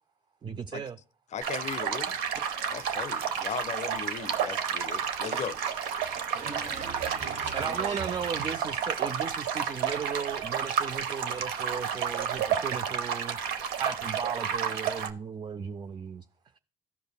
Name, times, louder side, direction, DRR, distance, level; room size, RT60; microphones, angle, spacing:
voice 1, 0.4-1.0 7.5-13.4 13.8-16.2, right 6 dB, 30° right, 0.3 m, -36 dB
voice 2, 1.3-2.1 2.7-5.6, left 7 dB, 50° left, 0.5 m, -37 dB
sound 1, 1.4-15.1, right 7 dB, 85° right, 0.7 m, -31 dB
voice 3, 6.0-8.1, right 5 dB, 50° right, 1.0 m, -39 dB
14.5 x 5.1 x 2.2 m
supercardioid pair, 65°, 15 cm